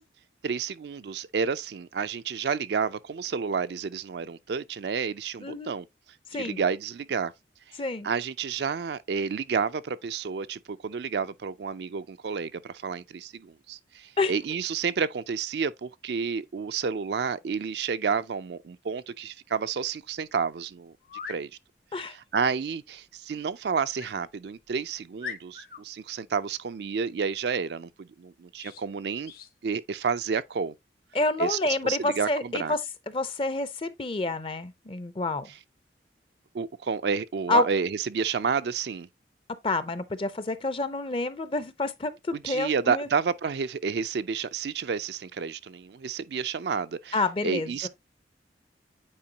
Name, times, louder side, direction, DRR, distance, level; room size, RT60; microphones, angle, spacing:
voice 1, 0.4-5.9 6.3-7.3 7.7-20.9 21.3-21.5 22.0-29.3 29.6-30.7 31.4-31.6 31.8-32.7 36.5-39.1 42.3-47.9, right 6 dB, 65° right, 0.4 m, -30 dB
voice 2, 5.4-5.7 6.3-6.6 7.8-8.1 14.2-14.3 21.9-22.1 31.1-32.8 33.1-35.5 37.5-37.6 39.6-42.1 42.4-43.1 47.1-47.9, left 2 dB, 30° left, 0.5 m, -28 dB
sound 1, 20.1-20.2 21.0-21.4 23.9-24.2 24.7-24.8 25.2-25.8 28.5-28.8 29.2-29.5, left 7 dB, 55° left, 1.0 m, -40 dB
8.7 x 4.5 x 2.8 m
head